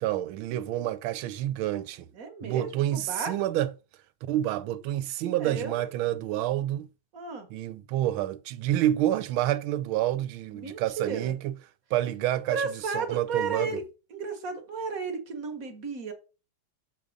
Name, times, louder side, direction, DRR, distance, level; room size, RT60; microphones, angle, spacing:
voice 1, 0.0-2.1 2.4-3.7 4.3-6.9 7.5-11.5 11.9-13.8, right 13 dB, 85° right, 1.4 m, -28 dB
voice 2, 2.1-3.4 5.3-5.9 7.1-7.5 10.5-11.3 12.5-13.8 14.1-16.1, right 5 dB, 50° right, 1.3 m, -33 dB
6.8 x 3.6 x 5.1 m
omnidirectional pair, 2.3 m